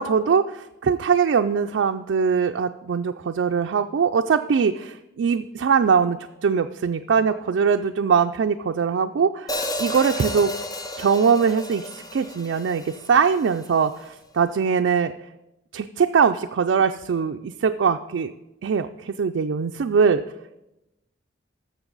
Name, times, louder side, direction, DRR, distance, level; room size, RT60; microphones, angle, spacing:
voice 1, 0.0-9.5 9.8-10.5 11.0-15.1 15.7-18.3 18.6-20.2, right 6 dB, 85° right, 6 dB, 0.4 m, -22 dB
Hi-hat, 9.5-13.7, left 1 dB, 20° left, 0.6 m, -32 dB
13.0 x 6.9 x 3.9 m, 0.93 s
head